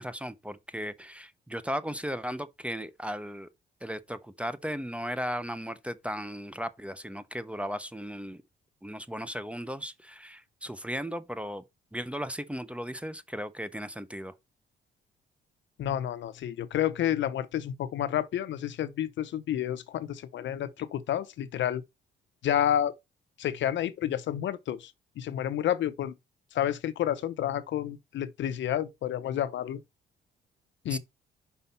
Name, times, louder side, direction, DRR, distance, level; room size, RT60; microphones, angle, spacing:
voice 1, 0.0-3.5 3.8-8.4 8.8-11.6 11.9-14.3 30.9-31.0, equal, 5° right, 0.7 m, -36 dB
voice 2, 15.8-21.8 22.4-22.9 23.4-24.9 25.2-26.1 26.5-29.8 30.8-31.0, left 10 dB, 70° left, 0.7 m, -30 dB
5.6 x 4.2 x 5.6 m
cardioid pair, 90°, 20 cm